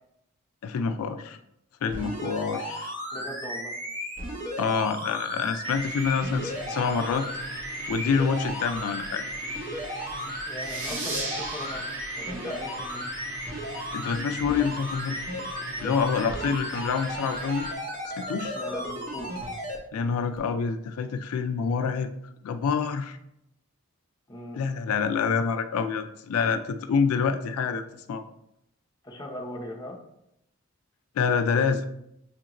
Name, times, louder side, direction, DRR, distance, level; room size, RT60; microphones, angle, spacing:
voice 1, 0.6-1.4 1.8-2.9 4.6-7.2 7.9-9.2 13.9-15.3 15.8-17.7 18.2-18.6 19.9-22.1 22.4-23.2 24.6-27.8 28.1-28.2 31.2-31.9, left 5 dB, 80° left, 8 dB, 0.3 m, -27 dB
sound 1, 1.9-19.8 20.4-20.5, equal, 35° right, 0.7 m, -35 dB
voice 2, 3.1-3.7 10.5-11.8 12.2-13.0 16.3-16.6 18.5-19.4 24.3-24.6 29.0-30.0, left 1 dB, 20° left, -1 dB, 0.6 m, -39 dB
sound 2, 5.6-17.7, equal, 60° right, 1.0 m, -42 dB
sound 3, 10.6-13.8, right 2 dB, 85° right, 1.6 m, -37 dB
6.4 x 2.5 x 2.9 m, 0.80 s
head